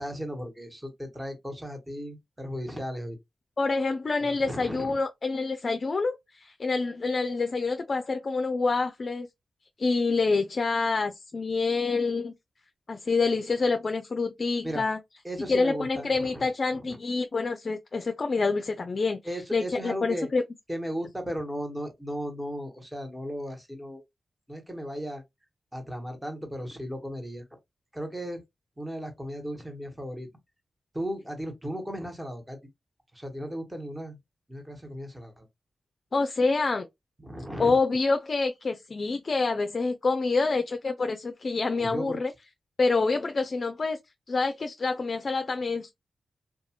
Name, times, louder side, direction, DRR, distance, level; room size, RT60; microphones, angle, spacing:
voice 1, 0.0-3.2 4.2-5.0 14.6-14.8 15.2-16.5 16.7-17.0 19.2-20.3 20.7-24.0 24.5-25.2 25.7-27.5 27.9-28.4 28.8-30.3 30.9-32.6 33.1-34.2 34.5-35.5 37.2-37.8 41.8-42.2, equal, 15° right, 1.2 m, -36 dB
voice 2, 3.6-9.3 9.8-12.3 12.9-15.0 15.5-19.2 19.5-20.4 36.1-36.9 37.6-42.3 42.8-44.0 44.3-45.9, left 3 dB, 55° left, 0.4 m, -27 dB
2.6 x 2.3 x 2.8 m
supercardioid pair, 40°, 0 cm